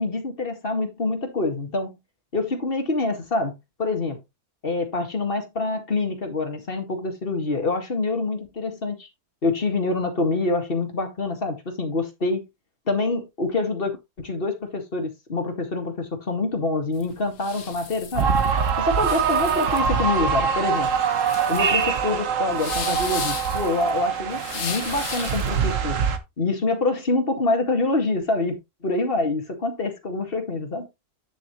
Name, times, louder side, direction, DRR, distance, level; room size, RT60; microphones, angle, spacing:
voice 1, 0.0-2.0 2.3-3.5 3.8-4.2 4.6-9.1 9.4-12.4 12.9-18.3 18.8-20.9 21.5-26.0 26.4-28.6 28.8-30.9, left 3 dB, 35° left, 2.1 m, -26 dB
sound 1, 16.9-25.6, left 7 dB, 55° left, 1.5 m, -36 dB
sound 2, 18.1-26.2, right 6 dB, 60° right, 1.4 m, -24 dB
9.4 x 7.1 x 3.0 m
omnidirectional pair, 1.6 m